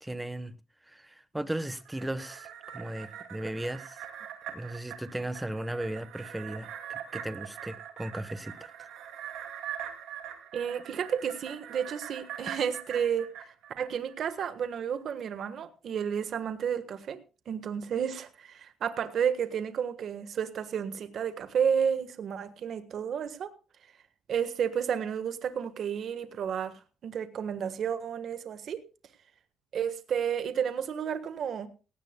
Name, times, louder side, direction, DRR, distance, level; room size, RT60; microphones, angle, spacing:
voice 1, 0.0-0.5 0.9-4.0 4.5-8.7, right 1 dB, 10° right, 1.1 m, -36 dB
sound 1, 1.8-14.3 14.7-14.8, right 9 dB, 90° right, 2.3 m, -43 dB
voice 2, 10.5-17.2 17.5-23.5 24.3-28.8 29.7-31.7, right 8 dB, 65° right, 1.4 m, -31 dB
17.5 x 17.0 x 2.3 m
cardioid pair, 90°, 0 cm